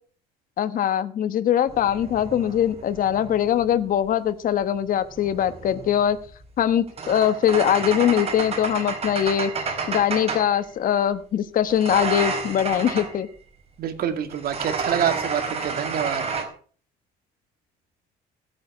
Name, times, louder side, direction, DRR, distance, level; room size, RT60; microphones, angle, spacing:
voice 1, 0.6-6.2 6.6-9.5 9.9-13.3, left 10 dB, 55° left, 12 dB, 1.2 m, -22 dB
sound 1, 1.7-3.8 5.0-10.6 11.7-13.2 14.3-16.4, right 5 dB, 35° right, 4.5 m, -30 dB
voice 2, 13.8-16.3, right 9 dB, 65° right, 8 dB, 2.2 m, -26 dB
15.5 x 8.7 x 6.1 m, 0.43 s
cardioid pair, 110°, 17 cm